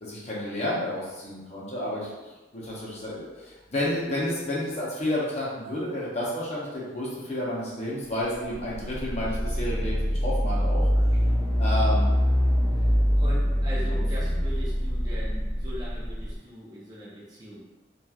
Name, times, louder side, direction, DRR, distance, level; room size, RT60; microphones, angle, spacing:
voice 1, 0.0-10.8 11.6-12.1 13.7-14.3, left 1 dB, 35° left, -7 dB, 0.7 m, -31 dB
sound 1, 8.6-16.3, equal, 5° left, 1.0 m, -24 dB
voice 2, 10.9-11.3 12.7-17.6, equal, 20° right, -8 dB, 0.5 m, -41 dB
2.9 x 2.3 x 2.3 m, 1.2 s
head